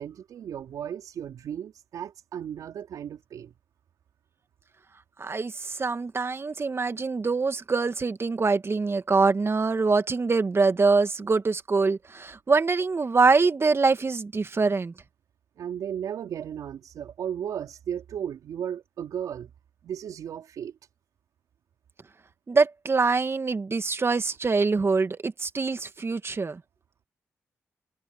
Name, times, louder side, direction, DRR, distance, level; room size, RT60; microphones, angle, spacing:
voice 1, 0.0-3.5 15.6-19.5 19.8-20.7, right 9 dB, 75° right, 4.7 m, -35 dB
voice 2, 5.2-14.9 22.5-26.6, right 4 dB, 45° right, 2.4 m, -24 dB
supercardioid pair, 45°, 6 cm